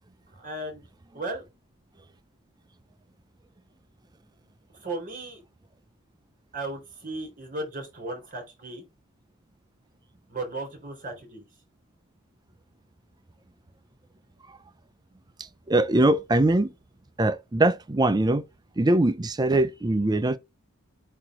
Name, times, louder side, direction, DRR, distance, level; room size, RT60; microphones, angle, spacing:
voice 1, 0.3-0.8 1.1-1.4 4.7-5.4 6.5-8.8 10.3-11.5, right 2 dB, 40° right, 3.9 m, -35 dB
voice 2, 15.7-16.7 17.2-18.4 18.8-20.4, right 2 dB, 20° right, 0.5 m, -22 dB
8.7 x 2.9 x 6.1 m
head